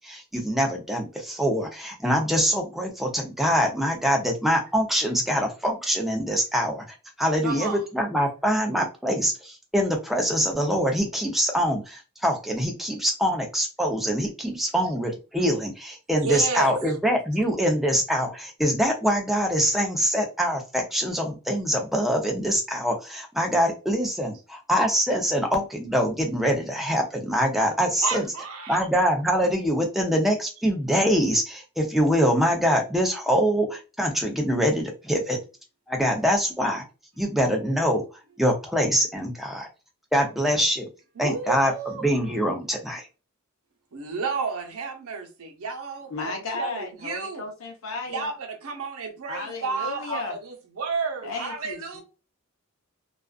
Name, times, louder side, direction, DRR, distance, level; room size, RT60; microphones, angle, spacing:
voice 1, 0.0-6.9 7.2-28.2 28.7-35.4 35.9-36.8 37.2-38.0 38.4-39.7 40.1-40.9 41.2-41.7 42.0-43.1, equal, ahead, 0.5 m, -24 dB
voice 2, 7.4-7.8 16.2-17.0 28.0-28.8 41.2-42.0 43.9-47.4 48.1-52.0, right 4 dB, 85° right, 0.7 m, -32 dB
voice 3, 46.1-48.3 49.3-50.4 51.2-52.0, left 4 dB, 75° left, 0.7 m, -34 dB
2.4 x 2.3 x 2.3 m
head